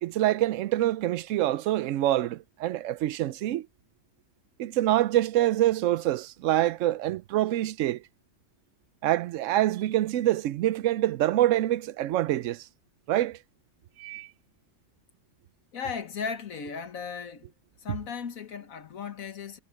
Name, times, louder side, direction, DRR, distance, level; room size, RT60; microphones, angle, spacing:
voice 1, 0.0-3.7 4.6-8.0 9.0-12.7 13.1-13.4 14.0-14.3, right 14 dB, 65° right, 0.8 m, -26 dB
voice 2, 15.7-17.5 17.8-19.6, left 6 dB, 65° left, 1.7 m, -36 dB
omnidirectional pair, 1.6 m